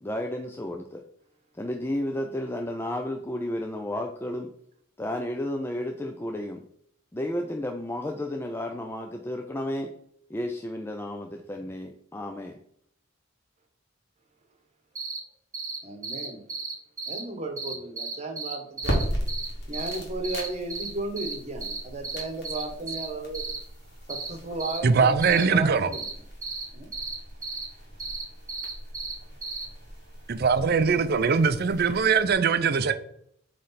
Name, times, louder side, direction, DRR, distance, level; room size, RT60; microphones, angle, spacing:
voice 1, 0.0-1.0 1.6-4.5 5.0-6.6 7.1-9.9 10.3-12.6, left 1 dB, 10° left, 0.4 m, -32 dB
sound 1, 14.9-15.2 15.5-15.8 16.0-17.2 17.6-19.5 19.7-20.0 20.2-20.9 21.2-21.3 21.6-21.8 22.0-23.1 23.3-23.6 24.1-24.3 24.6-24.8 25.2-25.4 25.9-26.1 26.4-26.6 26.9-27.1 27.4-27.6 28.0-29.1 29.4-29.6, right 4 dB, 15° right, 1.4 m, -34 dB
voice 2, 15.8-16.4 17.1-19.1 19.7-23.4 24.1-26.1 26.7-26.9, right 2 dB, 35° right, 1.1 m, -34 dB
sound 2, 18.8-32.3, equal, 55° left, 2.0 m, -37 dB
voice 3, 24.8-25.9 30.3-32.9, right 5 dB, 50° right, 0.5 m, -21 dB
7.7 x 3.2 x 4.1 m
head